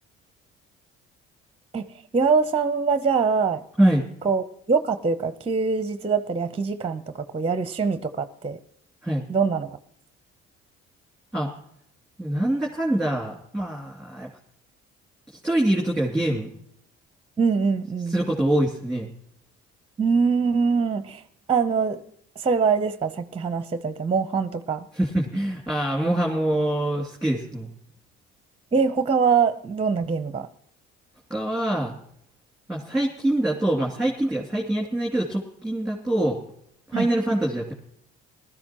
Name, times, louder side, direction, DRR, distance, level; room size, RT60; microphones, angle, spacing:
voice 1, 2.1-3.6 4.2-8.6 9.3-9.8 17.4-18.2 20.0-21.2 21.5-22.0 22.4-24.9 28.7-30.5 36.9-37.1, right 5 dB, 20° right, 12 dB, 0.7 m, -23 dB
voice 2, 12.2-14.3 15.3-16.5 18.1-19.1 24.9-27.7 31.3-31.9 32.7-36.4 36.9-37.7, right 1 dB, ahead, -3 dB, 2.6 m, -24 dB
19.5 x 13.0 x 3.0 m, 0.70 s
supercardioid pair, 65°, 29 cm